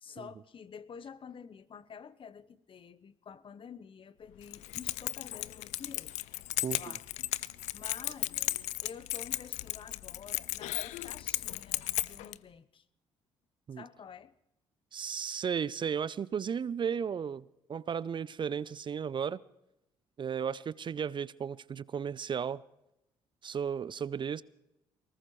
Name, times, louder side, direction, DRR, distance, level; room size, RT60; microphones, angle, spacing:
voice 1, 0.0-6.2 6.7-7.1 7.7-8.5 8.8-12.9 13.7-14.3, left 7 dB, 45° left, 1.0 m, -49 dB
Keys jangling, 4.4-12.4, left 17 dB, 75° left, 0.5 m, -35 dB
voice 2, 14.9-19.4 20.2-22.6 23.4-24.4, right 7 dB, 40° right, 0.5 m, -34 dB
21.0 x 19.0 x 3.2 m
hypercardioid pair, 55°, 12 cm